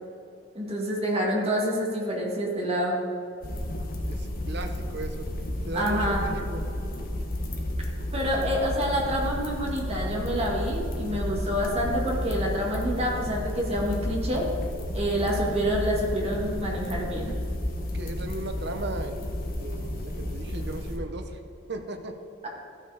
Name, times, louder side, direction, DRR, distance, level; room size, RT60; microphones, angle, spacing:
voice 1, 0.5-3.0 5.7-6.3 8.1-14.5 14.9-17.3, equal, 30° right, -2 dB, 2.0 m, -27 dB
sound 1, 3.4-21.0, left 1 dB, 45° left, 1.2 m, -32 dB
voice 2, 4.1-5.3 5.6-6.6 8.4-8.5 17.9-19.3 19.6-21.4 21.7-22.2, right 2 dB, 55° right, 6 dB, 0.9 m, -36 dB
14.5 x 6.3 x 4.9 m, 2.5 s
head